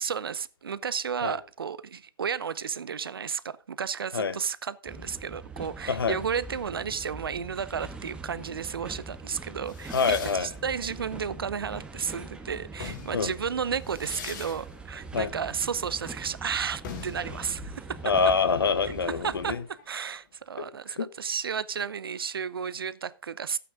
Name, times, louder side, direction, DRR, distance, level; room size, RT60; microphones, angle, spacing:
voice 1, 0.0-18.0 18.8-18.9 19.2-19.6 19.9-23.6, right 7 dB, 85° right, 0.7 m, -33 dB
sound 1, 4.9-19.6, right 3 dB, 10° right, 1.4 m, -43 dB
sound 2, 9.7-12.1 12.6-20.1, left 6 dB, 55° left, 3.0 m, -45 dB
voice 2, 9.9-10.5 13.1-13.3 15.1-15.3 18.0-19.6 20.9-21.1, left 5 dB, 85° left, 1.0 m, -25 dB
12.5 x 8.6 x 3.7 m
hypercardioid pair, 120°, 12 cm